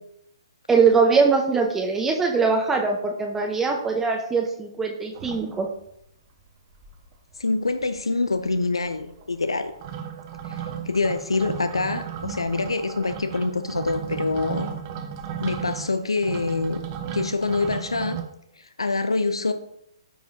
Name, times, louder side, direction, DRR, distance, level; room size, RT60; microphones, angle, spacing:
voice 1, 0.7-5.7, right 5 dB, 10° right, 1 dB, 0.8 m, -22 dB
sound 1, 5.1-6.1 6.5-6.6 6.7-7.4 7.7-18.2, right 8 dB, 40° right, 1.0 m, -35 dB
voice 2, 7.4-9.7 10.4-10.6 10.9-14.7 15.4-16.8 17.1-18.2 18.6-19.5, left 3 dB, 85° left, 9 dB, 0.6 m, -25 dB
13.5 x 4.7 x 2.7 m, 0.76 s
figure-of-eight pair, 125°, 3 cm